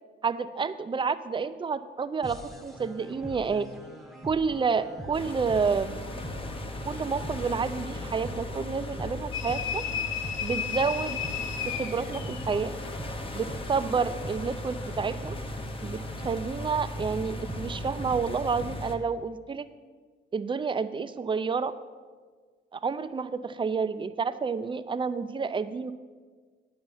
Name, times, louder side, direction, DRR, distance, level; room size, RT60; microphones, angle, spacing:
voice 1, 0.2-3.7 4.2-6.0 6.8-9.8 10.4-11.2 11.7-12.7 13.3-15.4 15.8-19.7 20.3-21.7 22.7-25.9, right 5 dB, 25° right, 12 dB, 0.5 m, -29 dB
sound 1, 2.2-18.2, right 1 dB, ahead, 1.0 m, -44 dB
sound 2, 5.1-19.0, left 1 dB, 25° left, 0.9 m, -37 dB
sound 3, 9.3-12.7, left 8 dB, 85° left, 0.7 m, -33 dB
8.6 x 5.5 x 7.2 m, 1.5 s
cardioid pair, 90°, 20 cm